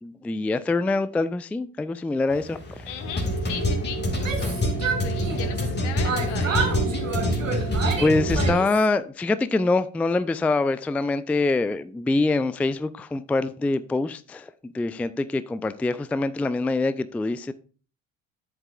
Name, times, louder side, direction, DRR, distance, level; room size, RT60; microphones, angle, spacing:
voice 1, 0.0-2.8 8.0-17.5, left 3 dB, 5° left, 0.3 m, -25 dB
sound 1, 2.3-8.5, equal, 25° left, 2.3 m, -26 dB
voice 2, 2.8-6.8, left 8 dB, 70° left, 1.4 m, -38 dB
Yell, 4.1-5.7 6.0-8.9, right 5 dB, 90° right, 1.2 m, -30 dB
10.5 x 8.0 x 2.4 m
figure-of-eight pair, 55°, 38 cm